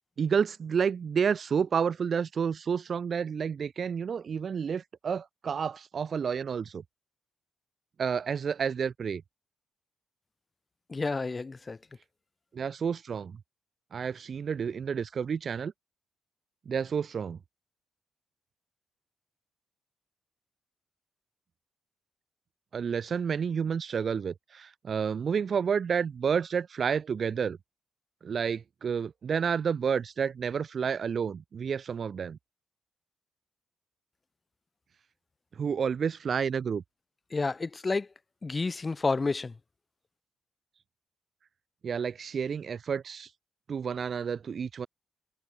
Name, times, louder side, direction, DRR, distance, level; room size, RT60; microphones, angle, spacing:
voice 1, 0.2-6.8 8.0-9.2 12.5-13.4 13.9-15.7 16.7-17.4 22.7-27.6 28.2-32.4 35.6-36.8 41.8-43.3 43.7-44.9, right 6 dB, 55° right, 4.2 m, -30 dB
voice 2, 10.9-11.8 37.3-38.1 38.4-39.5, left 3 dB, 30° left, 4.1 m, -30 dB
supercardioid pair, 60°, 0 cm